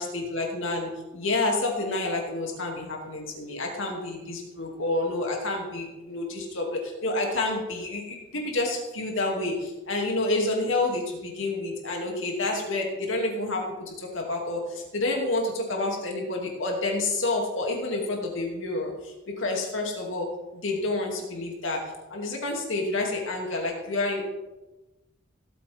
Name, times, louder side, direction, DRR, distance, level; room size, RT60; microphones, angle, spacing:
voice 1, 0.0-24.3, left 2 dB, 75° left, 0 dB, 2.7 m, -29 dB
17.5 x 8.3 x 3.6 m, 1.1 s
head